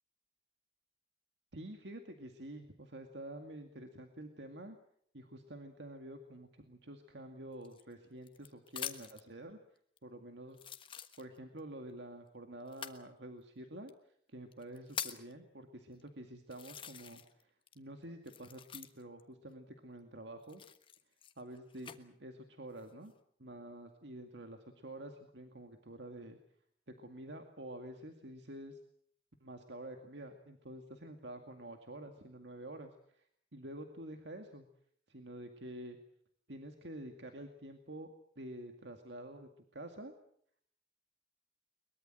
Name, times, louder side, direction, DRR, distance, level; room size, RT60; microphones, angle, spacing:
voice 1, 1.5-4.8 5.1-9.6 10.0-10.6 11.2-20.6 21.4-23.1 23.4-26.4 27.0-28.8 29.4-33.2 33.5-34.7 35.1-36.0 36.5-40.1, right 1 dB, 80° right, 5 dB, 2.1 m, -48 dB
sound 1, 7.6-9.3 10.0-10.1 10.5-11.6 12.7-13.0 13.9-14.0 14.5-15.3 16.0-16.1 16.5-17.4 17.7-19.2 20.4-22.0 22.6-23.1, left 8 dB, 30° left, 1.3 m, -45 dB
22.5 x 22.0 x 7.7 m, 0.65 s
head